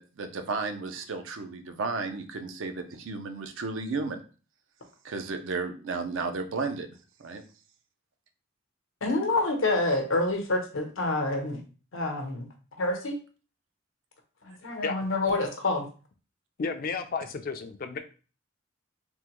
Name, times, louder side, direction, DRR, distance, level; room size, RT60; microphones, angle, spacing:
voice 1, 0.0-4.2 5.0-6.9 7.2-7.4, right 4 dB, 75° right, 7 dB, 0.5 m, -33 dB
voice 2, 9.0-11.6 11.9-12.5 12.8-13.2 14.4-15.9, left 2 dB, 90° left, 3 dB, 0.8 m, -27 dB
voice 3, 16.6-18.0, left 5 dB, 45° left, 8 dB, 0.4 m, -32 dB
3.5 x 2.1 x 2.9 m, 0.36 s
head